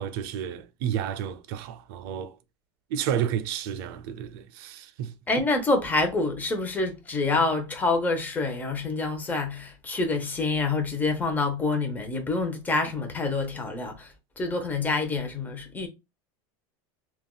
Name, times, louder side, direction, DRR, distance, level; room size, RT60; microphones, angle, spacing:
voice 1, 0.0-2.3 2.9-5.1, right 9 dB, 70° right, 0.4 m, -31 dB
voice 2, 5.3-15.9, left 3 dB, 15° left, 0.6 m, -27 dB
3.4 x 2.3 x 2.2 m
supercardioid pair, 140°, 13 cm